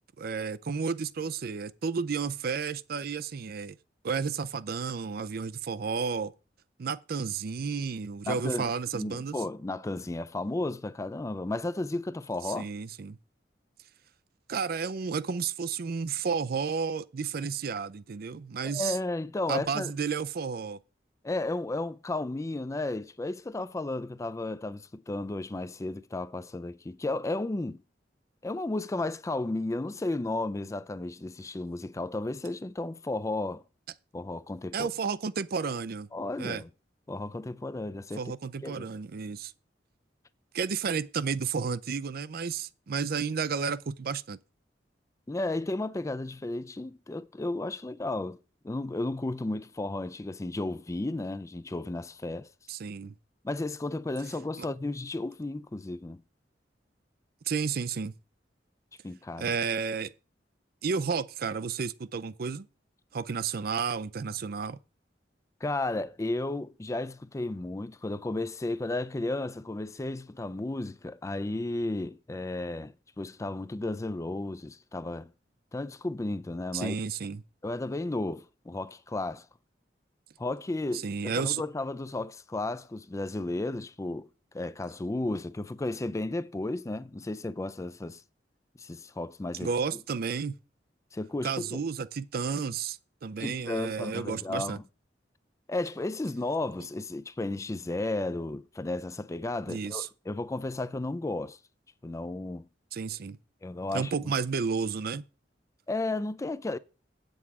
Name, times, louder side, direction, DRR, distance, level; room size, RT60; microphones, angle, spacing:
voice 1, 0.2-3.8 4.0-6.3 6.8-9.4 12.5-13.2 14.5-19.0 19.5-20.8 34.7-36.1 36.4-36.6 38.2-39.5 40.5-44.4 52.7-53.1 54.6-54.7 57.5-58.1 59.4-60.1 60.8-62.7 63.1-64.8 76.7-77.4 80.9-81.6 89.6-90.6 91.4-94.8 99.7-100.1 102.9-103.4 103.9-105.2, right 5 dB, 55° right, 0.5 m, -32 dB
voice 2, 8.3-12.7 18.6-19.9 21.2-27.8 28.4-33.6 34.1-34.9 36.1-36.7 37.1-38.2 38.6-38.9 45.3-48.4 48.6-52.5 53.4-56.2 59.0-59.5 65.6-75.3 75.7-77.0 77.6-79.5 80.4-84.3 84.5-88.2 88.8-89.7 91.1-91.8 93.4-94.8 95.7-101.6 102.0-102.7 103.6-104.1 105.9-106.8, left 2 dB, 15° left, 0.4 m, -33 dB
8.4 x 7.9 x 4.7 m
head